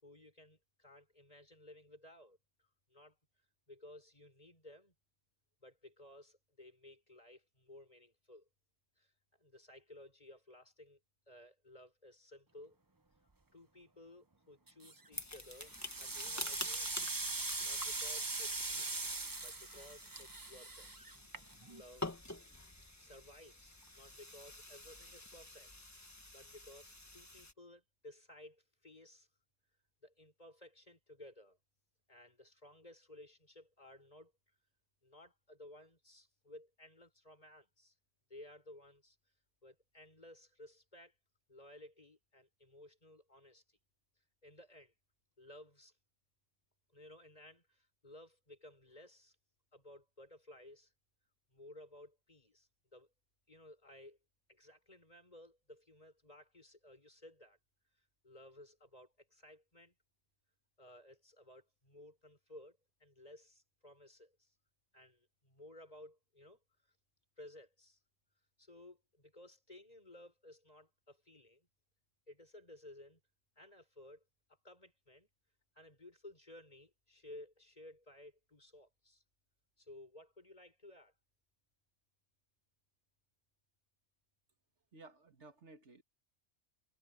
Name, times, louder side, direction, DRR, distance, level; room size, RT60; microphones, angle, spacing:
voice 1, 0.0-3.2 3.7-5.0 5.6-8.5 9.0-11.0 11.3-12.8 13.5-16.9 17.6-19.1 19.4-20.9 21.7-22.2 23.0-25.7 26.3-29.3 30.0-31.6 32.1-34.3 35.0-38.0 38.3-39.2 39.6-41.2 41.5-43.8 44.4-44.9 45.4-46.0 46.9-49.4 49.7-50.9 51.5-53.1 53.5-54.2 54.5-57.6 58.0-59.9 60.8-64.5 64.9-66.6 67.4-68.0 68.6-71.7 72.3-73.2 73.6-74.2 74.5-75.3 75.7-79.2 79.8-81.1, left 1 dB, 35° left, 5.4 m, -57 dB
sound 1, 14.7-15.1 15.5-21.8, right 3 dB, 20° right, 0.8 m, -41 dB
sound 2, 15.1-27.5, left 2 dB, 15° left, 1.4 m, -49 dB
voice 2, 84.9-86.0, right 3 dB, 75° right, 2.4 m, -56 dB
omnidirectional pair, 1.2 m